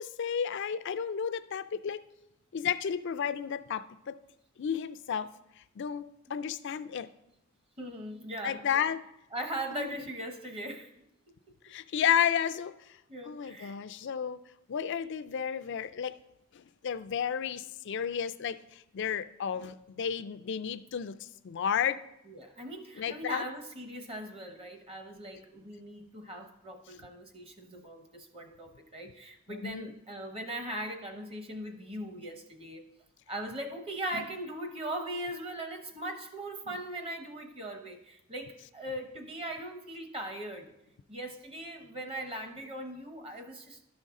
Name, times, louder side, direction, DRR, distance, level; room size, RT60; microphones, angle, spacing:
voice 1, 0.0-2.0 2.5-4.2 4.6-5.3 5.6-7.1 8.4-9.0 9.8-10.1 11.6-13.0 13.3-14.4 14.7-16.2 16.5-22.0 23.0-23.4 29.5-29.9, left 8 dB, 55° left, 13 dB, 0.4 m, -32 dB
voice 2, 7.8-8.7 9.3-10.9 13.1-13.8 22.3-32.8 33.3-40.7 41.1-43.8, right 1 dB, 25° right, 5 dB, 0.9 m, -40 dB
12.5 x 5.3 x 3.7 m, 0.86 s
head